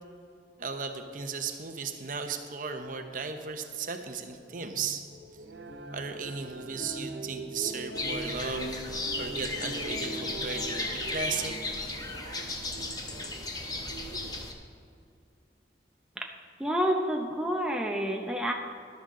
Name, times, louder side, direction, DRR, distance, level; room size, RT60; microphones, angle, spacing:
voice 1, 0.6-5.0 5.9-11.6, right 5 dB, 50° right, 6 dB, 0.8 m, -36 dB
sound 1, 4.4-12.0, equal, 50° left, 1.7 m, -43 dB
sound 2, 5.3-14.5, right 4 dB, 75° right, 0.5 m, -45 dB
sound 3, 7.9-14.5, left 2 dB, 20° left, 0.9 m, -35 dB
voice 2, 16.6-18.5, equal, 5° right, 1 dB, 0.6 m, -28 dB
13.0 x 12.0 x 3.7 m, 2.5 s
head